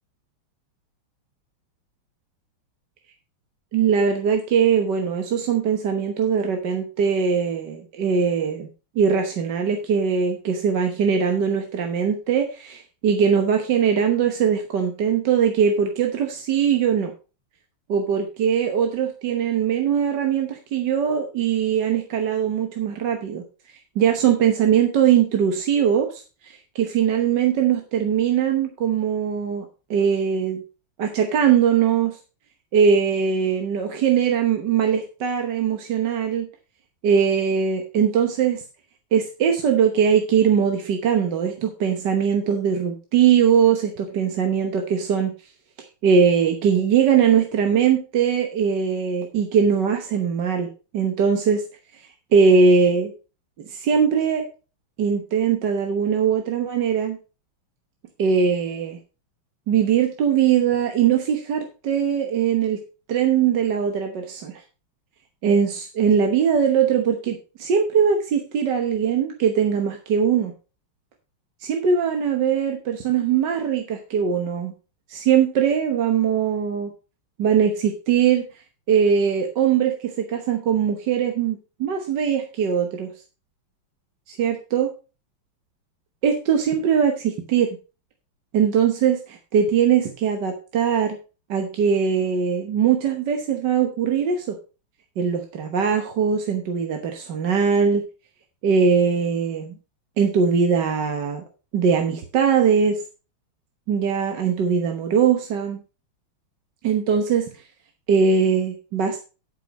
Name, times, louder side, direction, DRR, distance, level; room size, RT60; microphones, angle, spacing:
voice 1, 3.7-8.7 8.9-17.1 17.9-23.4 23.9-29.6 29.9-30.6 31.0-32.2 32.7-36.5 37.0-38.6 39.1-45.3 46.0-51.6 51.9-53.1 53.6-54.5 55.0-57.2 58.2-59.0 59.7-62.8 63.1-64.6 65.4-70.5 71.6-74.7 75.1-76.9 77.4-78.4 78.9-83.1 84.3-84.9 86.2-87.8 88.5-91.2 91.5-94.6 95.2-98.0 98.6-99.7 100.2-101.4 101.7-103.0 103.9-105.8 106.8-107.5 108.1-109.2, right 7 dB, 60° right, 4 dB, 1.6 m, -21 dB
11.5 x 5.5 x 5.1 m, 0.33 s
omnidirectional pair, 2.3 m